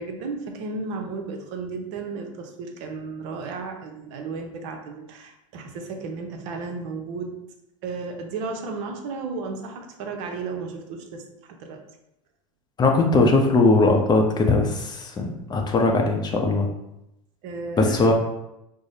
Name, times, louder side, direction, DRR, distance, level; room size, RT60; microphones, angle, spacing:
voice 1, 0.0-7.3 7.8-11.2 11.5-11.8 17.4-18.1, right 4 dB, 60° right, 4 dB, 0.7 m, -34 dB
voice 2, 12.8-16.7 17.8-18.1, left 3 dB, 25° left, 2 dB, 0.6 m, -20 dB
4.7 x 2.0 x 2.7 m, 0.85 s
hypercardioid pair, 95°, 18 cm